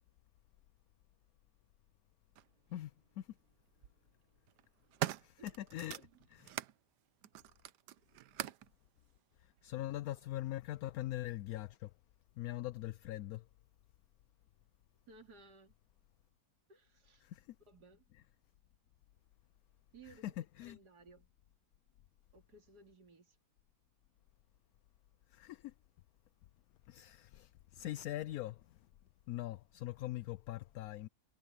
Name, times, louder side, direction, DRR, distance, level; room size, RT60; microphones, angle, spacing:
sound 1, 2.4-2.5 3.6-3.9 4.5-6.8 7.2-8.7 9.6-9.7, right 13 dB, 90° right, 1.3 m, -42 dB
voice 1, 5.2-6.5 9.4-11.9 12.4-13.4 17.2-17.5 20.1-20.8 25.3-25.7 26.9-28.8 29.3-31.1, left 15 dB, 70° left, 1.0 m, -42 dB
voice 2, 15.1-15.7 16.7-17.3 17.7-18.1 19.9-21.3 22.3-23.4, right 3 dB, 75° right, 3.2 m, -60 dB
omnidirectional pair, 1.7 m